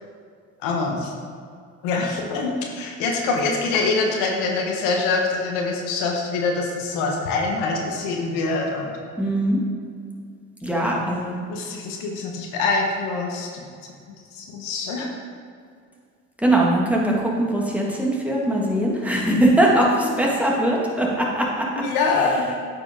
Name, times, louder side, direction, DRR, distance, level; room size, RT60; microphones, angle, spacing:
voice 1, 0.6-1.1 1.8-9.0 11.0-11.2 11.5-13.6 14.3-15.1 21.8-22.5, left 3 dB, 85° left, 1 dB, 1.0 m, -24 dB
voice 2, 9.2-9.6 10.6-11.4 16.4-21.7, right 1 dB, 5° right, -3 dB, 1.8 m, -21 dB
8.6 x 5.0 x 3.6 m, 2.2 s
supercardioid pair, 60°, 33 cm